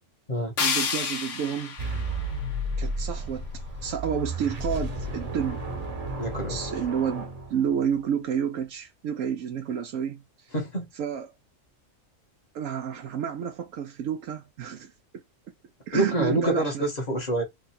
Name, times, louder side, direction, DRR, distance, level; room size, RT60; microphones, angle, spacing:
sound 1, 0.6-3.5, left 6 dB, 65° left, 1.2 m, -31 dB
voice 1, 0.6-1.8 2.8-3.5 3.8-5.6 6.5-10.5 10.9-11.3 12.5-15.2 15.9-16.9, right 8 dB, 80° right, 1.0 m, -30 dB
sound 2, 1.8-8.0, right 1 dB, 35° right, 0.8 m, -33 dB
voice 2, 6.2-6.6 10.5-10.9 15.9-17.4, right 1 dB, 35° left, 1.1 m, -27 dB
3.3 x 2.4 x 4.1 m
omnidirectional pair, 1.4 m